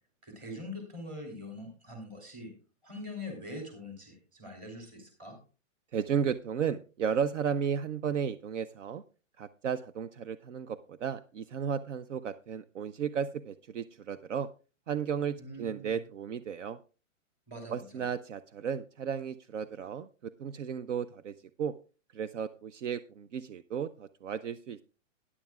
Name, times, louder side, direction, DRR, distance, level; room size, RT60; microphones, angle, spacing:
voice 1, 0.2-2.5 2.8-5.4 15.4-16.0 17.5-18.1, left 1 dB, 20° right, 2 dB, 2.8 m, -43 dB
voice 2, 5.9-9.0 9.4-14.5 14.9-16.8 17.7-21.7 22.1-24.8, right 7 dB, 65° right, 13 dB, 0.6 m, -34 dB
16.5 x 9.9 x 2.3 m, 0.34 s
hypercardioid pair, 180°, 39 cm